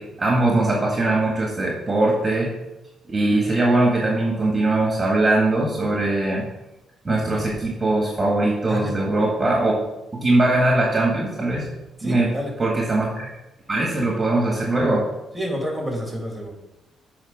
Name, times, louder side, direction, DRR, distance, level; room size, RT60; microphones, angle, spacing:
voice 1, 0.0-2.5 3.1-6.5 7.1-9.8 10.1-11.7 12.0-12.3 12.6-13.3 13.7-15.1, right 2 dB, 25° right, -2 dB, 1.8 m, -21 dB
voice 2, 8.7-9.0 12.0-12.5 15.3-16.5, equal, 5° right, 0 dB, 2.8 m, -29 dB
7.4 x 4.7 x 5.9 m, 0.97 s
cardioid pair, 90°, 0 cm